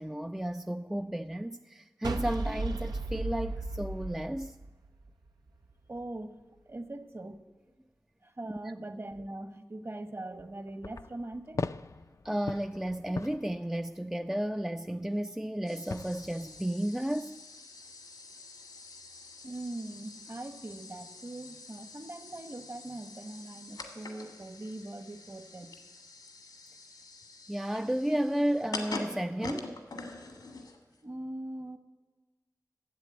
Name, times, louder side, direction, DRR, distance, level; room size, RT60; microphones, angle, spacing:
voice 1, 0.0-4.5 12.2-17.4 27.5-29.8, right 1 dB, 5° right, 0.4 m, -33 dB
sound 1, 2.0-5.3, right 2 dB, 90° right, 0.8 m, -35 dB
voice 2, 5.9-6.4 6.7-7.4 8.2-11.6 19.4-25.7 31.0-31.8, right 1 dB, 40° right, 1.2 m, -41 dB
sound 2, 10.3-14.4 15.9-16.6, left 4 dB, 50° left, 0.4 m, -41 dB
sound 3, 15.7-31.0, left 3 dB, 85° left, 1.6 m, -46 dB
11.0 x 7.7 x 8.4 m
cardioid pair, 40°, 7 cm